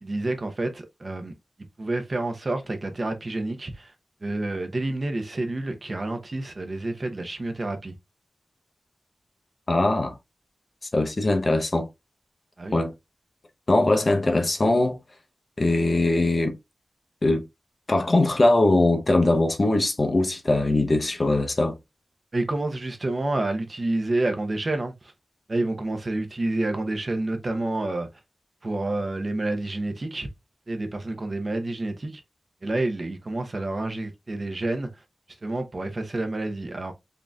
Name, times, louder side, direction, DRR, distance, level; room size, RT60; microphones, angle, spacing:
voice 1, 0.0-1.3 1.8-3.9 4.2-7.9 12.6-12.8 22.3-25.1 25.5-28.1 28.6-30.3 30.7-32.2 32.6-34.9 35.4-36.9, right 2 dB, 40° right, 0.8 m, -29 dB
voice 2, 9.7-10.1 10.9-11.9 12.7-12.9 13.7-15.0 15.6-16.6 17.2-17.5 17.9-21.8, left 2 dB, 40° left, 0.8 m, -21 dB
3.8 x 3.7 x 2.3 m
wide cardioid pair, 100°, 0 cm